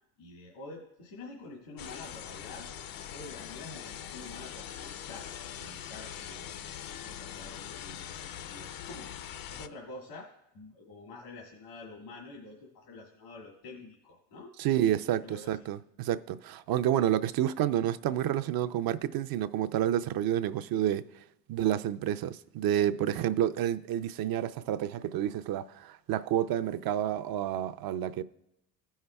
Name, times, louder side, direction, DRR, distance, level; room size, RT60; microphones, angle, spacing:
voice 1, 0.2-2.7 3.1-10.3 10.5-14.5 15.2-15.7, left 2 dB, 80° left, 2.1 m, -48 dB
sound 1, 1.8-9.7, left 9 dB, 45° left, 0.7 m, -42 dB
voice 2, 14.6-21.0 21.5-28.2, right 11 dB, 45° right, 0.6 m, -29 dB
16.5 x 5.6 x 2.3 m
hypercardioid pair, 60°, 49 cm